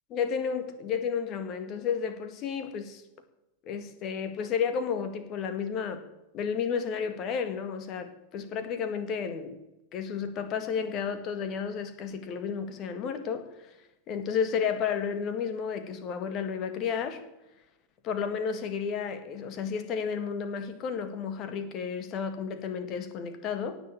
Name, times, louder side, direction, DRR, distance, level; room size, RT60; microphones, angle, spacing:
voice 1, 0.1-3.0 3.7-6.0 6.3-9.6 9.9-13.8 14.1-17.2 18.0-23.8, left 6 dB, 35° left, 1.9 m, -32 dB
17.5 x 7.0 x 8.7 m
figure-of-eight pair, 90°, 0 cm